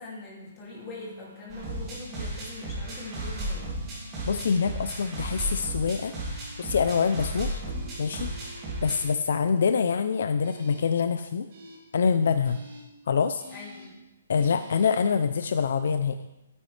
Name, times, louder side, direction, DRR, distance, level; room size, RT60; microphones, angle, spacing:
voice 1, 0.0-3.7 13.5-14.0, left 2 dB, 15° left, -5 dB, 2.6 m, -42 dB
sound 1, 0.7-1.9 2.8-4.3 5.3-6.9 7.6-9.0 10.4-10.8 11.5-11.8 12.4-12.8 13.4-13.9 14.3-15.0, right 1 dB, 40° right, 3.6 m, -49 dB
sound 2, 1.5-9.0, right 1 dB, 15° right, 2.6 m, -34 dB
voice 2, 4.3-7.6 8.0-11.5 11.9-12.6 13.1-13.4 14.3-16.2, left 6 dB, 60° left, 10 dB, 0.5 m, -25 dB
13.0 x 9.4 x 3.3 m, 0.97 s
hypercardioid pair, 170°, 0 cm